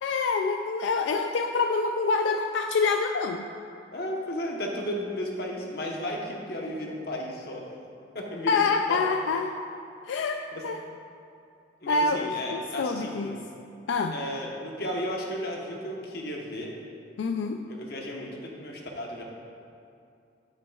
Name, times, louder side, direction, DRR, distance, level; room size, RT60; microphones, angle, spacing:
voice 1, 0.0-3.5 8.5-9.6 10.1-10.8 11.9-13.4 13.9-14.1 17.2-17.6, left 4 dB, 90° left, 5 dB, 0.3 m, -26 dB
voice 2, 3.9-7.7 8.1-8.6 8.9-9.0 10.5-10.6 11.8-13.4 14.1-16.7 17.7-19.2, left 1 dB, 55° left, -1 dB, 1.0 m, -34 dB
9.7 x 8.2 x 2.3 m, 2.5 s
head